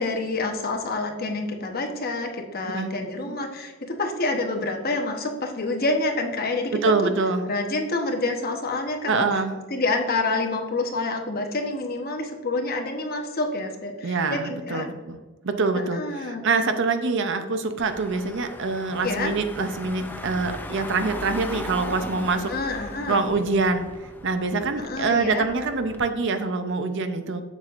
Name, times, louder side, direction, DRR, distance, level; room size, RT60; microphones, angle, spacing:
voice 1, 0.0-7.1 7.5-9.2 9.7-14.8 15.7-16.5 19.0-19.3 22.5-23.2 24.8-25.5, left 2 dB, 45° left, 3 dB, 0.9 m, -28 dB
voice 2, 6.7-7.5 9.0-9.6 14.0-15.2 15.4-22.5 23.1-23.9 24.2-27.4, right 4 dB, 55° right, 8 dB, 0.6 m, -25 dB
Car / Engine, 17.8-26.0, left 1 dB, 10° left, 0.4 m, -38 dB
7.3 x 6.8 x 2.5 m, 1.3 s
head